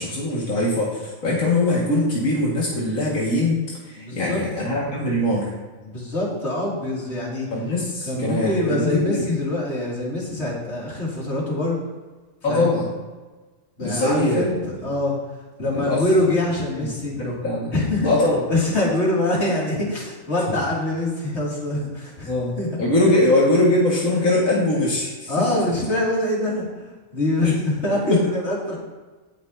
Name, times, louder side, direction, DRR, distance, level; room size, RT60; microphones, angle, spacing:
voice 1, 0.0-3.6 3.9-5.5 7.5-9.4 12.4-12.9 13.8-14.4 15.7-16.0 16.8-16.9 17.2-17.7 18.0-18.4 22.3-22.5 22.8-25.3 27.4-27.5 28.1-28.2, left 2 dB, 90° left, -5 dB, 2.4 m, -21 dB
voice 2, 4.0-4.6 5.8-7.5 8.0-11.8 12.5-12.7 13.8-14.5 14.8-15.1 15.6-17.2 17.7-18.1 18.5-22.3 22.6-22.7 25.3-28.8, left 1 dB, 55° left, -5 dB, 3.0 m, -24 dB
18.0 x 6.1 x 2.8 m, 1.3 s
omnidirectional pair, 1.4 m